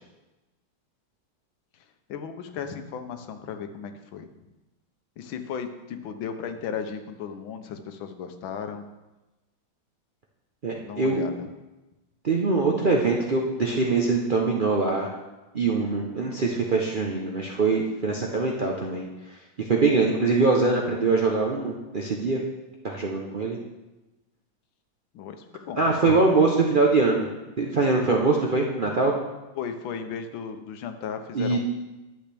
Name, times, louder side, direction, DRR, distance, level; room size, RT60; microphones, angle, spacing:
voice 1, 2.1-4.3 5.2-8.9 10.8-11.5 25.1-26.2 29.5-31.6, left 7 dB, 85° left, 8 dB, 1.5 m, -35 dB
voice 2, 10.6-11.2 12.2-15.1 15.5-19.0 19.6-22.4 22.8-23.6 25.8-27.3 27.6-29.1 31.3-31.6, right 3 dB, 80° right, -1 dB, 0.4 m, -23 dB
11.0 x 7.9 x 3.4 m, 1.1 s
omnidirectional pair, 2.1 m